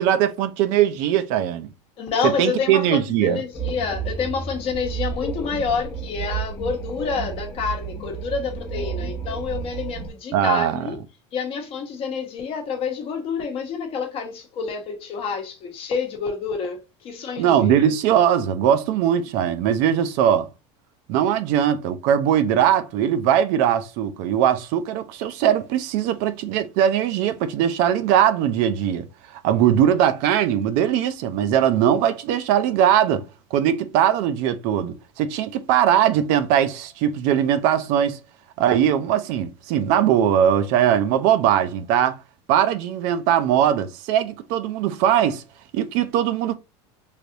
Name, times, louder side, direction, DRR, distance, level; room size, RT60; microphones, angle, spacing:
voice 1, 0.0-1.7 2.2-3.4 10.3-10.9 17.4-20.5 21.1-33.2 33.5-38.2 38.6-42.2 42.5-45.4 45.7-46.5, right 10 dB, 60° right, 0.5 m, -20 dB
voice 2, 2.0-11.0 11.3-17.7, left 5 dB, 40° left, 0.9 m, -28 dB
sound 1, 3.5-10.1, right 6 dB, 15° left, 0.7 m, -31 dB
3.3 x 2.7 x 2.6 m
supercardioid pair, 145°, 15 cm